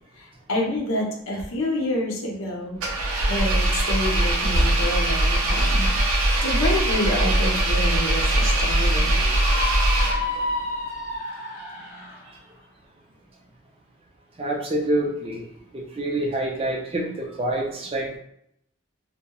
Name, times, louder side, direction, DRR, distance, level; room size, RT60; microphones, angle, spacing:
voice 1, 0.2-2.8 3.3-5.9 6.1-9.2, left 1 dB, 70° left, -1 dB, 0.6 m, -28 dB
Engine, 2.8-10.5, right 1 dB, 85° right, 0.5 m, -21 dB
Screaming, 9.3-12.3, left 2 dB, 35° left, 0.6 m, -30 dB
voice 2, 14.4-15.4 15.7-18.2, right 1 dB, 25° right, 0 dB, 0.3 m, -27 dB
2.9 x 2.0 x 2.2 m, 0.74 s
head